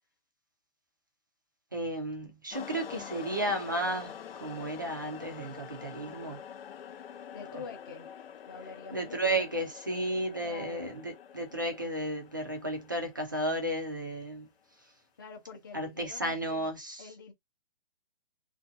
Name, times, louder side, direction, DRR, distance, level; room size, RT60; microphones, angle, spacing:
voice 1, 1.7-6.4 8.9-14.5 15.7-17.1, right 1 dB, 20° right, 0.3 m, -33 dB
sound 1, 2.5-14.0, left 8 dB, 75° left, 0.6 m, -46 dB
voice 2, 7.3-8.1 8.5-9.7 10.4-11.0 15.2-16.7 17.0-17.3, left 5 dB, 25° left, 0.6 m, -46 dB
2.5 x 2.2 x 2.5 m
hypercardioid pair, 175°, 29 cm